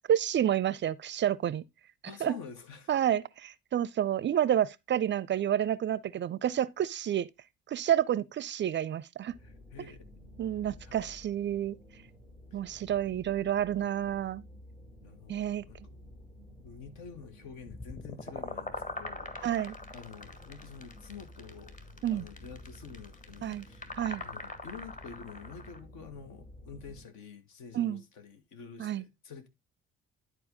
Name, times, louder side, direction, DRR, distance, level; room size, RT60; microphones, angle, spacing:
voice 1, 0.1-1.6 2.2-2.3 2.9-7.3 7.7-9.4 10.4-11.8 12.5-14.4 15.3-15.6 19.4-19.8 22.0-22.2 23.4-23.7 24.0-24.2 27.7-28.0 28.8-29.0, right 10 dB, 35° right, 0.5 m, -29 dB
voice 2, 2.0-2.9 9.4-10.1 10.8-11.1 12.5-12.6 15.0-15.8 16.6-21.8 22.1-23.9 24.2-29.5, left 6 dB, 65° left, 1.5 m, -48 dB
sound 1, 9.3-27.0, left 1 dB, 85° left, 2.5 m, -52 dB
sound 2, 17.7-25.8, left 2 dB, 25° left, 1.6 m, -42 dB
11.0 x 4.7 x 3.6 m
figure-of-eight pair, 45°, 31 cm